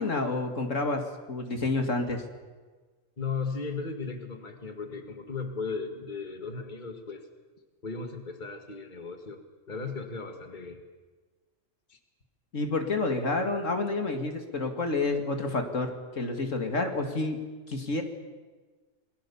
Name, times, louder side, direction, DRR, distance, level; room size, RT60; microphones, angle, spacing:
voice 1, 0.0-2.2 12.5-17.4 17.7-18.0, left 3 dB, 65° left, 5 dB, 2.5 m, -29 dB
voice 2, 3.2-7.3 7.8-9.4 9.7-10.8 11.9-12.0, left 4 dB, 35° left, 6 dB, 2.2 m, -36 dB
28.0 x 21.0 x 7.1 m, 1.4 s
omnidirectional pair, 1.4 m